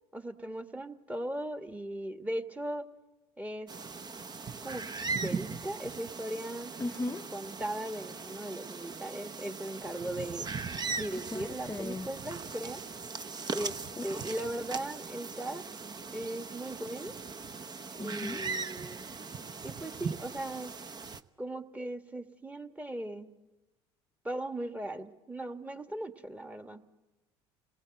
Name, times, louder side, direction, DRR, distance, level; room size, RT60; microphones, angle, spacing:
voice 1, 0.1-2.9 3.4-3.7 4.6-4.8 5.1-6.7 7.3-10.5 11.0-12.8 13.5-13.8 14.0-15.6 16.1-17.2 17.9-19.1 19.6-20.7 21.4-23.3 24.2-26.8, right 1 dB, 10° right, 1.5 m, -38 dB
sound 1, 3.7-21.2, right 4 dB, 30° right, 0.9 m, -39 dB
voice 2, 6.8-7.3 11.3-12.1 14.0-14.1 18.0-18.4, left 2 dB, 15° left, 0.7 m, -37 dB
28.5 x 18.5 x 7.8 m
hypercardioid pair, 80°, 14 cm